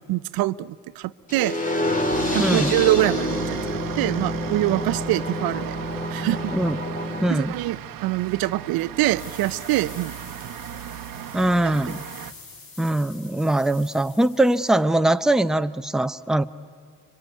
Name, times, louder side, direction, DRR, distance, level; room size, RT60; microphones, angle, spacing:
voice 1, 0.1-1.6 2.3-5.8 6.1-6.5 7.3-10.5 11.6-11.7, right 16 dB, 85° right, 16 dB, 0.6 m, -25 dB
sound 1, 1.3-7.3, left 1 dB, 20° left, 2.4 m, -27 dB
sound 2, 2.1-12.3, right 11 dB, 70° right, 1.0 m, -36 dB
voice 2, 2.4-2.7 6.5-6.8 7.2-7.6 11.3-12.0 12.8-16.4, right 1 dB, ahead, 10 dB, 0.6 m, -21 dB
sound 3, 9.2-14.8, left 4 dB, 80° left, 4.4 m, -46 dB
26.0 x 24.0 x 9.4 m, 2.1 s
cardioid pair, 90°, 35 cm